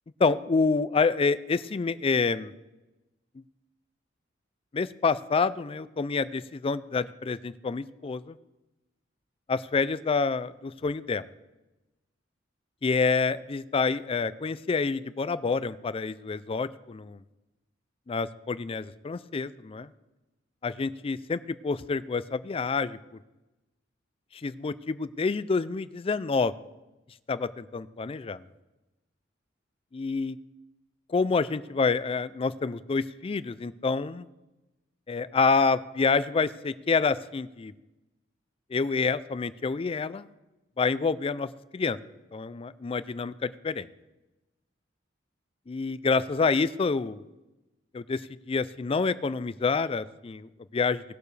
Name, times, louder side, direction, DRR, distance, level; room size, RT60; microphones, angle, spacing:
voice 1, 0.2-2.5 4.7-8.4 9.5-11.2 12.8-17.2 18.1-19.9 20.6-23.0 24.3-26.5 27.3-28.4 29.9-30.4 31.1-34.3 35.1-37.7 38.7-40.3 40.8-42.0 42.3-43.9 45.7-47.2 47.9-48.2 48.5-51.0, left 4 dB, 30° left, 16 dB, 0.4 m, -27 dB
18.5 x 6.8 x 3.3 m, 1.0 s
head